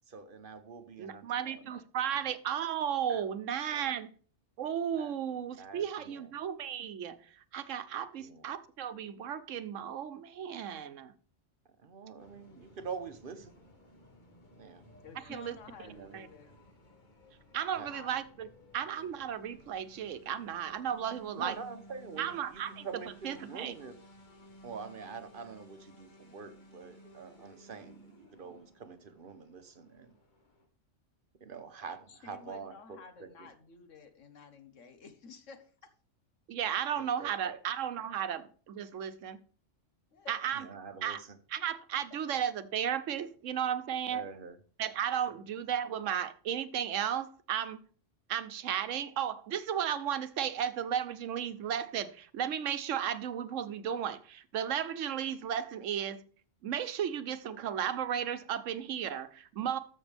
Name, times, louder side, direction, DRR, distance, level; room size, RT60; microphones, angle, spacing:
voice 1, 0.1-1.8 3.1-3.3 3.6-3.9 4.9-5.1 5.5-6.3 8.2-8.5 11.8-13.5 14.6-14.9 15.8-16.2 17.7-17.9 21.3-24.0 24.6-30.1 31.4-33.5 37.0-37.6 40.5-41.4 44.1-44.6 45.3-45.4, right 5 dB, 50° right, 1.0 m, -45 dB
voice 2, 1.0-4.1 4.6-11.1 15.3-15.6 16.1-16.3 17.5-18.5 18.7-21.6 22.2-22.9 23.2-23.7 36.5-39.4 40.3-40.6 41.0-41.2 41.5-44.2 44.8-47.8 48.3-56.2 56.6-59.8, right 9 dB, 90° right, 1.1 m, -34 dB
sound 1, 12.2-30.7, equal, 40° left, 1.6 m, -57 dB
voice 3, 15.0-16.6 17.9-18.1 32.1-35.9 40.1-40.3 40.6-40.7, left 5 dB, 85° left, 1.5 m, -52 dB
13.5 x 6.4 x 3.4 m
omnidirectional pair, 1.3 m